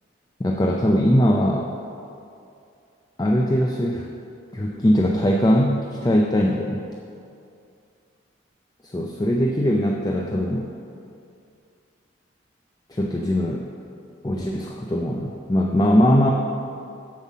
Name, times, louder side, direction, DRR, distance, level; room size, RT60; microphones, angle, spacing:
voice 1, 0.4-1.7 3.2-4.1 4.5-6.9 8.8-10.7 12.9-13.7 14.2-16.3, equal, 20° left, 0 dB, 0.4 m, -21 dB
7.5 x 5.7 x 7.2 m, 2.5 s
head